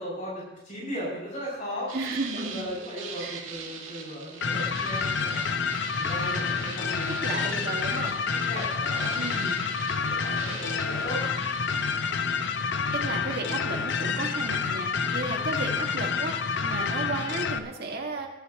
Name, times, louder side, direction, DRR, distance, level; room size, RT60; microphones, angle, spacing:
voice 1, 0.0-1.9 2.3-5.4 6.0-8.0 8.4-9.3 9.9-11.2, equal, 40° left, -6 dB, 6.1 m, -37 dB
voice 2, 1.9-2.7 3.2-3.5 7.1-8.1 9.1-9.6 12.9-18.3, right 2 dB, 50° right, 1 dB, 1.9 m, -34 dB
sound 1, 1.9-12.0, right 6 dB, 80° right, 2.1 m, -42 dB
sound 2, 4.4-17.6, left 5 dB, 60° left, 0.7 m, -28 dB
21.0 x 11.5 x 3.0 m, 0.98 s
head